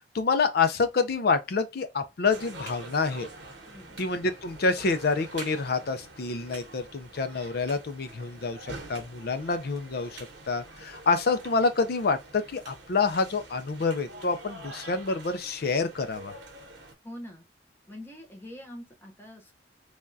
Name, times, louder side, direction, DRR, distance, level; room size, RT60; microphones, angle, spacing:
voice 1, 0.1-3.3 4.0-10.2 10.5-16.3, left 4 dB, 55° left, 0.5 m, -27 dB
sound 1, 2.3-16.9, right 2 dB, 90° right, 0.9 m, -46 dB
voice 2, 3.7-4.0 17.0-17.4 17.9-19.5, left 1 dB, 10° left, 0.7 m, -44 dB
3.4 x 2.3 x 2.5 m
head